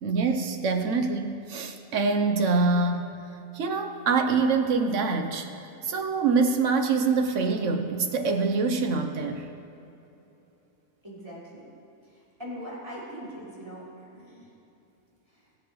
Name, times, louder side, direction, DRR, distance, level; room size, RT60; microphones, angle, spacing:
voice 1, 0.0-3.2 3.5-5.5 5.8-9.5, right 4 dB, 70° right, 5 dB, 1.2 m, -25 dB
voice 2, 11.0-11.7 12.0-14.5 15.3-15.4, equal, 20° right, -8 dB, 3.3 m, -41 dB
22.0 x 8.4 x 3.2 m, 3.0 s
omnidirectional pair, 1.3 m